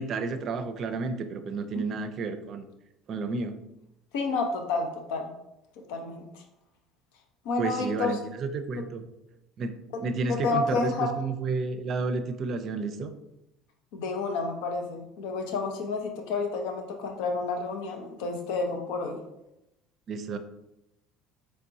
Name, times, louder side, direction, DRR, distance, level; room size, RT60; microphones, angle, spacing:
voice 1, 0.0-2.6 3.1-3.6 7.6-9.0 9.6-9.7 10.0-13.1 20.1-20.4, right 4 dB, 50° right, 9 dB, 0.5 m, -31 dB
voice 2, 4.1-5.3 5.9-6.4 7.4-8.2 10.3-11.1 13.9-19.2, left 3 dB, 75° left, 4 dB, 0.7 m, -30 dB
4.4 x 3.3 x 2.7 m, 0.88 s
hypercardioid pair, 70°, 0 cm